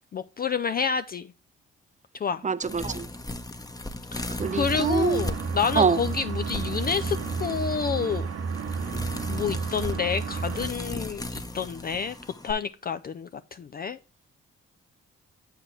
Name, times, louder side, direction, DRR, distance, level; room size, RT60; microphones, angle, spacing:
voice 1, 0.1-1.3 2.1-2.4 4.1-8.3 9.3-12.2 12.4-14.0, left 6 dB, 30° left, 0.4 m, -29 dB
voice 2, 2.4-3.1 4.4-5.2 5.8-6.0, right 5 dB, 25° right, 0.6 m, -24 dB
sound 1, 2.6-12.5, left 1 dB, 15° left, 0.9 m, -37 dB
sound 2, 4.4-10.7, right 5 dB, 50° right, 1.0 m, -32 dB
7.6 x 5.0 x 4.3 m
hypercardioid pair, 50°, 29 cm